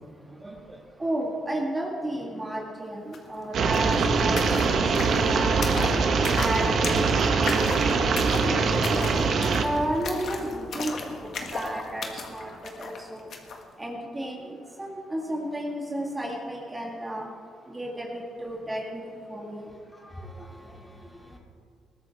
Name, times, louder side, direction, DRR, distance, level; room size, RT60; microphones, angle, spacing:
voice 1, 0.3-5.9 6.3-8.1 8.4-9.0 9.6-11.1 11.5-12.5 12.8-13.3 13.8-17.3 17.7-19.7, right 1 dB, 20° right, -1 dB, 2.0 m, -33 dB
sound 1, 3.1-3.2 3.4-13.6, left 4 dB, 60° left, 1.7 m, -36 dB
sound 2, 3.5-9.6, right 4 dB, 65° right, 1.3 m, -23 dB
voice 2, 19.9-21.4, equal, 15° left, -1 dB, 2.7 m, -45 dB
20.5 x 13.0 x 3.6 m, 2.3 s
cardioid pair, 90°, 0 cm